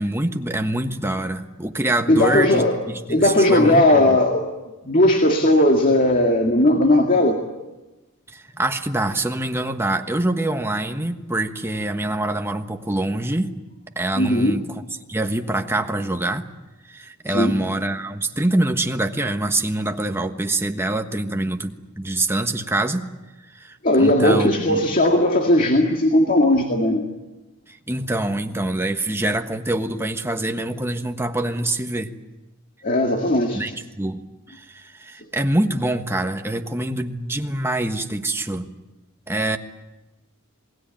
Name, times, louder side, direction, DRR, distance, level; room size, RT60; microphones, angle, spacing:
voice 1, 0.0-4.2 8.3-13.5 13.9-14.8 15.1-16.5 16.9-23.1 23.5-24.8 27.7-32.1 33.5-34.2 34.5-38.7 39.3-39.6, right 1 dB, 10° right, 5 dB, 1.3 m, -25 dB
voice 2, 2.1-2.8 3.1-4.5 4.8-7.4 14.2-14.6 17.3-17.6 23.8-27.1 32.8-33.6, left 1 dB, 40° left, 3 dB, 2.1 m, -17 dB
27.5 x 19.0 x 9.1 m, 1.1 s
head